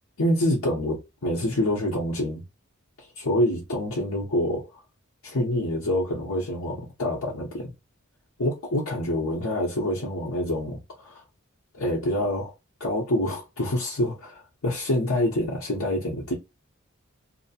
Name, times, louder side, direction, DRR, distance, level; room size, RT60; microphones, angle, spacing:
voice 1, 0.2-2.4 3.0-4.7 5.2-7.7 8.4-11.2 11.7-12.5 12.8-16.3, left 1 dB, 90° left, 1.0 m, -26 dB
2.9 x 2.1 x 2.8 m
head